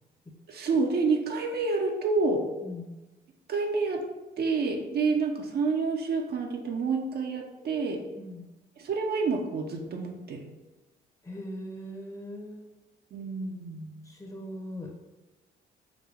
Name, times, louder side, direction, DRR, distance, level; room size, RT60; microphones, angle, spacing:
voice 1, 0.5-2.5 3.5-4.0 4.4-8.0 8.8-10.5 13.1-14.0, right 4 dB, 55° right, 2 dB, 0.6 m, -28 dB
voice 2, 2.6-2.9 8.2-8.5 11.2-12.7 14.0-14.9, left 1 dB, 15° left, 0 dB, 0.8 m, -40 dB
4.9 x 2.2 x 3.4 m, 1.1 s
cardioid pair, 90°, 20 cm